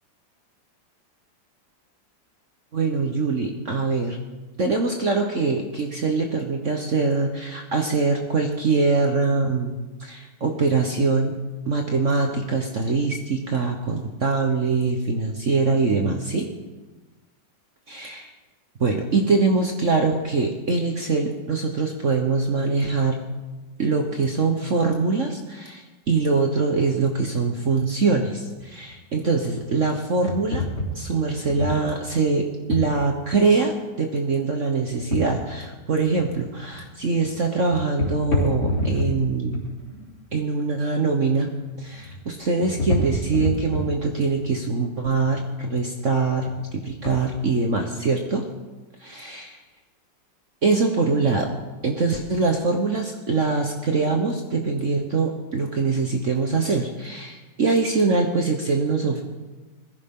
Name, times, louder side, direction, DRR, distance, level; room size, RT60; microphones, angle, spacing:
voice 1, 2.7-4.2 4.6-9.7 10.0-16.5 17.9-18.3 18.8-23.3 23.8-30.7 30.9-39.7 40.3-46.5 46.7-48.4 49.0-49.6 50.6-51.5 51.8-59.2, right 4 dB, 45° right, 3 dB, 1.3 m, -23 dB
sound 1, 28.6-28.7 28.9-29.9 30.3-32.0 32.7-33.0 34.9-35.6 35.8-36.4 36.7-36.9 37.2-37.4 37.7-39.3 39.5-40.2 41.6-42.2 42.5-44.5 45.0-46.2 46.5-46.6 46.9-47.1, left 1 dB, 60° left, 4.1 m, -28 dB
21.0 x 14.5 x 3.8 m, 1.2 s
omnidirectional pair, 2.0 m